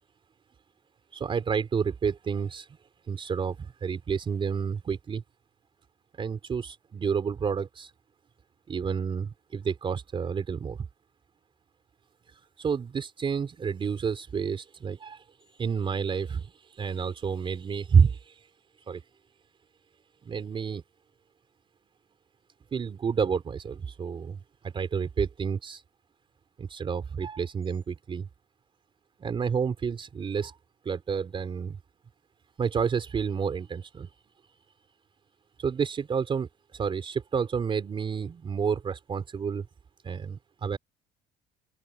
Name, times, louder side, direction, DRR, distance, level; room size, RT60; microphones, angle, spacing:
voice 1, 1.1-2.7 3.1-5.2 6.2-7.9 8.7-10.8 12.6-15.2 15.6-18.4 18.9-19.0 20.2-20.8 22.7-25.8 26.6-28.3 29.2-30.5 30.8-31.8 32.6-34.1 35.6-39.7 40.0-40.8, right 6 dB, 35° right, 3.9 m, -29 dB
open air
cardioid pair, 130°, 15 cm